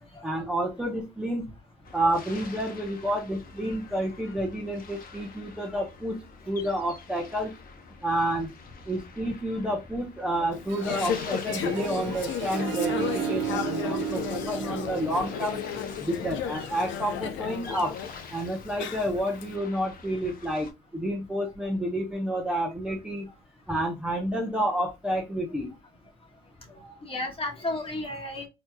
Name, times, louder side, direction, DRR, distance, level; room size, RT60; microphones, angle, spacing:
voice 1, 0.2-1.5 1.9-6.2 6.5-7.5 8.0-8.5 8.9-15.6 16.0-18.0 18.3-23.3 23.7-25.7, right 1 dB, 5° right, -1 dB, 0.8 m, -29 dB
sound 1, 1.8-20.7, left 4 dB, 50° left, 0.9 m, -46 dB
Conversation / Chatter, 10.5-19.4, left 8 dB, 80° left, 0.6 m, -34 dB
Harp, 10.6-16.1, right 12 dB, 90° right, 0.5 m, -34 dB
voice 2, 26.7-28.5, left 1 dB, 30° left, 1 dB, 1.4 m, -34 dB
4.2 x 3.0 x 2.2 m, 0.23 s
cardioid pair, 105°, 19 cm